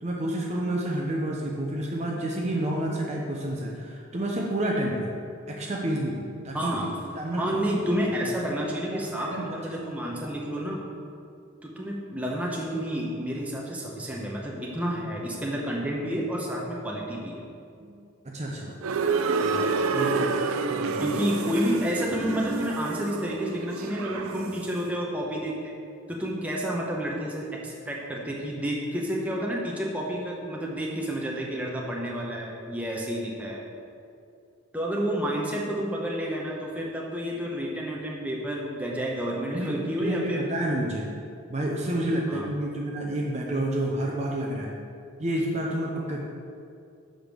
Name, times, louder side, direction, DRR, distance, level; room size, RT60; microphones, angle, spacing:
voice 1, 0.0-5.2 5.5-6.7 7.1-7.5 7.9-8.0 8.9-9.1 9.3-9.5 17.8-17.9 18.2-18.8 19.4-20.4 20.7-21.1 39.5-41.1 41.5-44.7 45.2-46.2, right 1 dB, 30° right, -2 dB, 0.7 m, -29 dB
voice 2, 6.5-6.9 7.3-10.8 11.6-17.4 20.1-20.3 21.0-25.8 26.1-33.6 34.7-40.5 42.3-42.5, equal, 5° right, -3 dB, 0.9 m, -30 dB
sound 1, 18.8-24.7, right 4 dB, 80° right, 0.5 m, -29 dB
7.2 x 5.2 x 6.2 m, 2.4 s
head